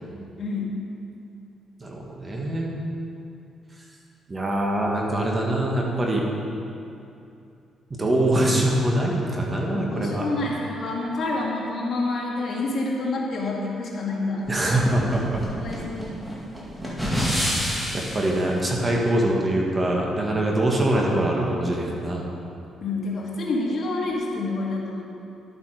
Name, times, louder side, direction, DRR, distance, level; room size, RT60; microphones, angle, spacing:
voice 1, 0.4-0.7 9.7-14.5 15.5-16.2 22.8-25.0, left 2 dB, 50° left, -3 dB, 2.0 m, -28 dB
voice 2, 1.8-2.8 4.3-6.2 8.0-10.3 14.5-15.4 17.3-22.2, right 1 dB, 25° right, -2 dB, 1.8 m, -24 dB
sound 1, 14.5-18.4, equal, 5° right, 1.9 m, -28 dB
11.5 x 7.5 x 5.0 m, 2.6 s
cardioid pair, 90°, 0 cm